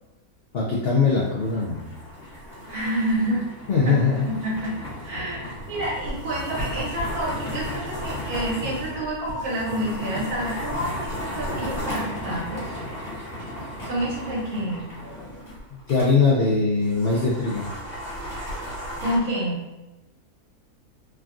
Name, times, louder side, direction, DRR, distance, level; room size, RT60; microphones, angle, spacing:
voice 1, 0.5-1.9 3.7-4.3 15.7-17.7, left 4 dB, 80° left, -3 dB, 0.5 m, -21 dB
sound 1, 0.9-16.1 16.4-16.5 16.8-19.2, equal, 35° left, 1.2 m, -34 dB
voice 2, 2.7-3.4 4.2-4.7 5.0-12.6 13.8-14.9 19.0-19.6, right 1 dB, 85° right, -7 dB, 1.7 m, -28 dB
3.4 x 2.2 x 2.4 m, 1.0 s
omnidirectional pair, 1.5 m